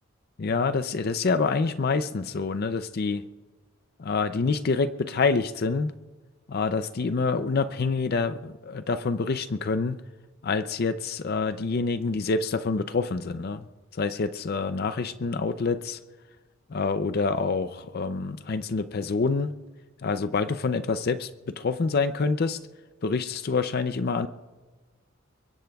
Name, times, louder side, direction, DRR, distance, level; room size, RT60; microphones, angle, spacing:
voice 1, 0.4-3.2 4.0-5.9 6.5-10.0 10.4-13.6 13.9-16.0 16.7-19.5 20.0-22.6 23.0-24.3, left 4 dB, 50° left, 12 dB, 0.5 m, -27 dB
23.0 x 21.0 x 2.3 m, 1.3 s
head